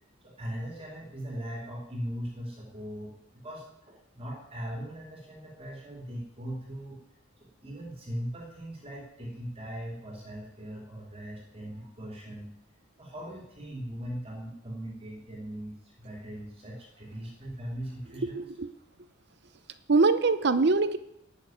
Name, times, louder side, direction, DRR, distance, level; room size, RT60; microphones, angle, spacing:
voice 1, 0.2-7.0 7.4-12.5 13.0-18.4, equal, 30° right, -1 dB, 2.9 m, -39 dB
voice 2, 18.4-18.7 19.9-21.0, right 3 dB, 55° right, 12 dB, 0.8 m, -23 dB
11.5 x 6.7 x 9.1 m, 0.76 s
head